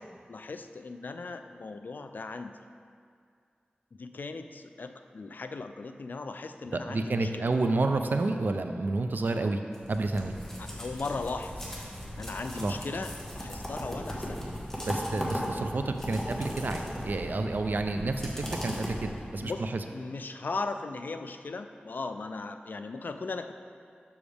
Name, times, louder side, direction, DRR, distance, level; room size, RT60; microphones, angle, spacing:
voice 1, 0.3-2.5 4.0-7.4 10.6-11.8 12.1-14.4 19.4-19.6 19.9-23.5, left 3 dB, 65° left, 8 dB, 0.3 m, -38 dB
voice 2, 6.7-9.6 9.9-10.3 12.6-12.8 14.8-19.8, right 3 dB, 65° right, 6 dB, 0.4 m, -30 dB
sound 1, 9.7-19.5, equal, 10° left, 1.2 m, -37 dB
7.0 x 6.1 x 3.4 m, 2.2 s
wide cardioid pair, 75°, 3 cm